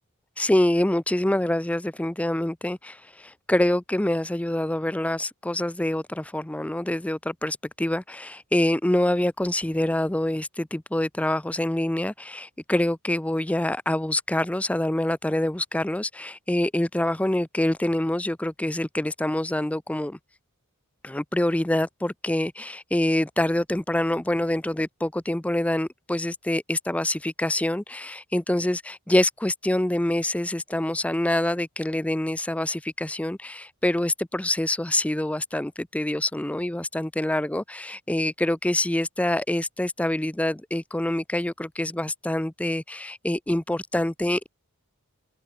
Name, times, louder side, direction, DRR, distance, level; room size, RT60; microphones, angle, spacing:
voice 1, 0.4-20.2 21.0-44.5, left 1 dB, 5° left, 0.4 m, -26 dB
head